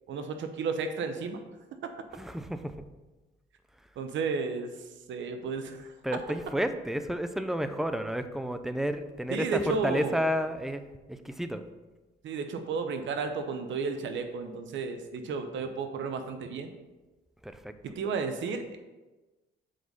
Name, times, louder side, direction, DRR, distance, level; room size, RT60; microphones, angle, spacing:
voice 1, 0.1-1.4 4.0-4.7 5.1-5.9 9.3-10.2 12.2-16.7 17.8-18.8, right 4 dB, 70° right, 7 dB, 0.8 m, -33 dB
voice 2, 2.2-2.7 6.0-10.8 11.1-11.6 17.4-17.7, equal, ahead, 9 dB, 0.5 m, -31 dB
7.6 x 4.1 x 5.3 m, 1.2 s
cardioid pair, 90°, 20 cm